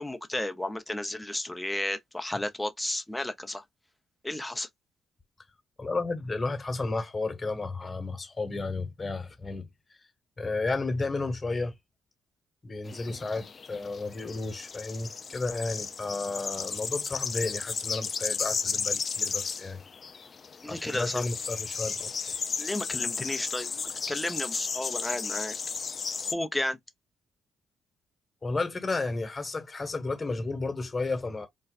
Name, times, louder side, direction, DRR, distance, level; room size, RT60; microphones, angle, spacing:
voice 1, 0.0-3.6 4.2-4.7 20.6-21.2 22.6-23.7 24.1-25.6 26.3-26.8, left 1 dB, 10° left, 0.7 m, -32 dB
voice 2, 5.8-9.7 10.4-11.7 12.6-19.8 20.7-22.1 28.4-31.5, left 3 dB, 25° left, 1.4 m, -32 dB
sound 1, 12.9-26.3, left 5 dB, 40° left, 0.5 m, -34 dB
4.2 x 2.3 x 2.4 m
cardioid pair, 90°, 0 cm